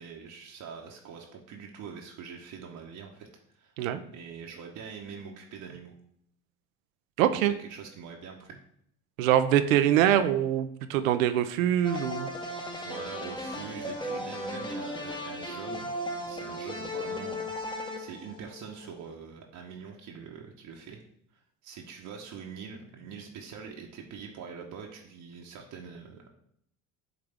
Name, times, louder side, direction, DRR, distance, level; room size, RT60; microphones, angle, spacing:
voice 1, 0.0-3.3 3.5-5.9 7.6-8.6 10.1-10.5 12.8-17.6 18.0-21.0 21.3-26.3, right 6 dB, 50° right, 0 dB, 1.0 m, -44 dB
voice 2, 7.2-7.5 9.2-12.3, right 11 dB, 80° right, 11 dB, 0.6 m, -24 dB
sound 1, 11.8-18.9, left 1 dB, 10° left, 0.9 m, -36 dB
8.8 x 3.4 x 3.4 m, 0.71 s
hypercardioid pair, 70°, 40 cm